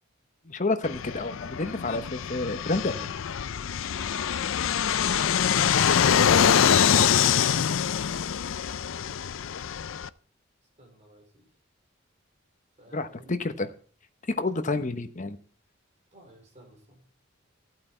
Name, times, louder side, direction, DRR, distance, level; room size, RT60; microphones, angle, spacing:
voice 1, 0.5-3.1 6.9-7.1 12.9-13.7 14.4-15.4, left 2 dB, 40° left, 9 dB, 1.0 m, -29 dB
Fixed-wing aircraft airplane, 0.8-10.1, left 8 dB, 70° left, 0.5 m, -24 dB
voice 2, 9.0-9.5 10.8-11.5 12.8-13.4 16.1-17.0, right 1 dB, 35° right, 2 dB, 4.1 m, -51 dB
15.0 x 8.5 x 4.4 m, 0.43 s
head